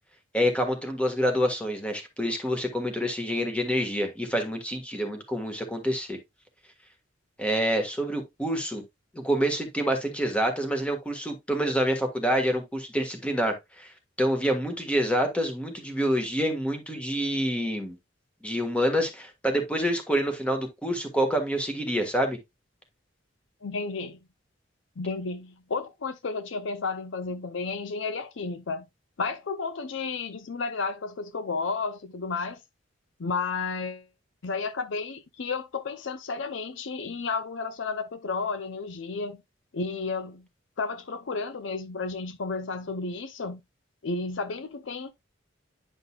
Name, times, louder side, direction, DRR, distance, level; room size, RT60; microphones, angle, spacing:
voice 1, 0.3-6.2 7.4-8.8 9.1-13.9 14.2-17.9 18.4-22.4, equal, 5° left, 1.5 m, -27 dB
voice 2, 23.6-24.2 25.0-28.9 29.2-32.6 33.2-34.1 34.4-39.4 39.7-40.5 40.8-43.6 44.0-45.1, left 4 dB, 70° left, 0.6 m, -32 dB
9.8 x 5.2 x 2.4 m
head